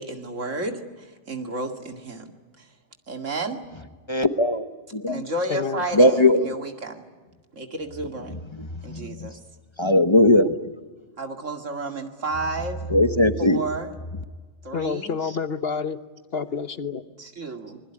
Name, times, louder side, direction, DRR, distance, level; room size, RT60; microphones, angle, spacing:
voice 1, 0.0-2.3 2.6-2.7 3.1-3.6 5.1-7.1 7.5-8.4 8.8-9.4 11.2-12.9 13.4-13.9 14.6-15.4 17.2-17.8, right 2 dB, 85° right, 5 dB, 2.6 m, -31 dB
voice 2, 4.1-4.7 4.9-5.2 5.9-6.5 8.9-9.3 9.8-10.5 12.9-13.6, left 1 dB, 25° left, 9 dB, 1.0 m, -19 dB
voice 3, 5.5-5.8 14.7-16.0 16.3-17.0, left 5 dB, 55° left, 12 dB, 1.2 m, -28 dB
25.5 x 21.5 x 10.0 m, 1.3 s
omnidirectional pair, 1.3 m